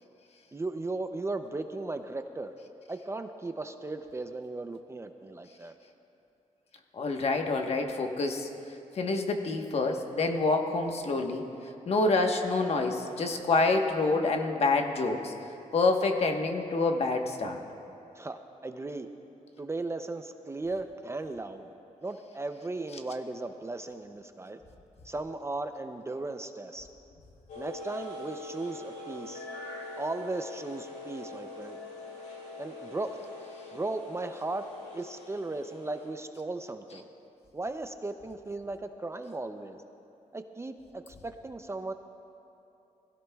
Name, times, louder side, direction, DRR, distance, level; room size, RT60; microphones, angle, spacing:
voice 1, 0.5-2.5 2.9-5.7 18.2-19.1 19.6-21.7 22.0-24.6 25.0-26.9 27.6-29.5 30.0-31.8 32.6-33.2 33.7-34.7 34.9-37.1 37.5-39.8 40.3-41.9, right 2 dB, 20° right, 8 dB, 0.5 m, -36 dB
voice 2, 7.0-8.5 9.0-11.4 11.9-15.3 15.7-17.6, left 3 dB, 50° left, 3 dB, 1.2 m, -27 dB
sound 1, 27.5-36.1, left 2 dB, 80° left, 3.1 m, -43 dB
21.5 x 16.0 x 2.3 m, 2.8 s
cardioid pair, 105°, 13 cm